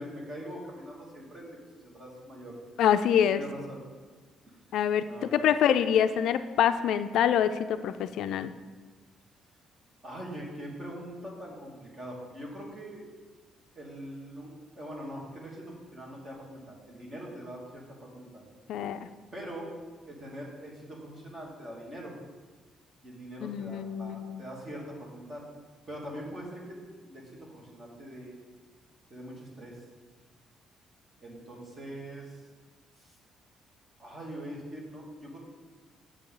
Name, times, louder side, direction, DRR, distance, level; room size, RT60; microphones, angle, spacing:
voice 1, 0.0-1.5 1.8-2.6 3.3-3.8 4.4-4.6 5.0-5.4 10.0-13.0 13.8-18.5 19.3-19.7 20.1-22.2 23.0-25.5 25.9-28.4 29.1-29.8 31.2-32.4 33.0-33.2 34.0-35.4, equal, 30° right, -2 dB, 2.0 m, -42 dB
voice 2, 2.8-3.4 4.7-5.0 5.3-8.5 18.7-19.0 23.4-24.4, left 9 dB, 70° left, 11 dB, 0.4 m, -25 dB
8.2 x 7.1 x 3.8 m, 1.4 s
cardioid pair, 145°, 0 cm